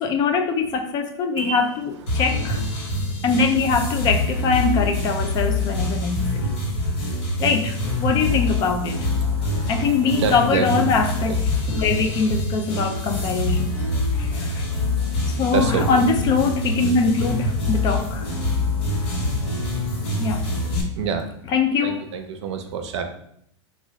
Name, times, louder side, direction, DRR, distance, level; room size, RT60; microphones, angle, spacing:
voice 1, 0.0-2.6 3.2-6.5 7.4-9.1 9.7-13.8 14.2-14.6 15.3-18.3 20.2-20.5 21.5-22.0, left 4 dB, 25° left, 6 dB, 0.3 m, -22 dB
voice 2, 1.4-1.8 2.1-2.7 9.2-10.8 13.9-14.5 15.0-16.0 18.9-19.0 21.0-21.5 21.8-23.1, right 6 dB, 70° right, 6 dB, 0.5 m, -29 dB
sound 1, 2.1-20.8, left 2 dB, 65° left, 1.1 m, -25 dB
3.5 x 2.4 x 3.0 m, 0.70 s
supercardioid pair, 140°, 15 cm